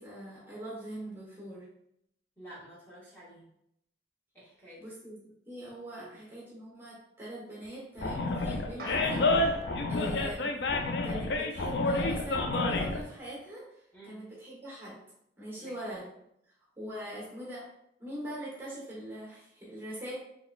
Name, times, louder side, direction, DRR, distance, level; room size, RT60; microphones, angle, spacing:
voice 1, 0.0-1.7 4.8-9.6 9.9-10.5 11.0-15.0 15.4-16.1 16.8-17.7 18.0-20.1, right 1 dB, 10° right, -6 dB, 1.0 m, -42 dB
voice 2, 2.4-3.5 4.3-4.8 6.0-6.2 13.9-14.2 15.6-15.8, right 1 dB, 10° left, -9 dB, 1.0 m, -50 dB
Animal, 8.0-13.0, left 2 dB, 65° left, 0.4 m, -29 dB
sound 1, 8.8-11.3, equal, 50° right, 0.7 m, -44 dB
3.8 x 3.0 x 2.3 m, 0.75 s
head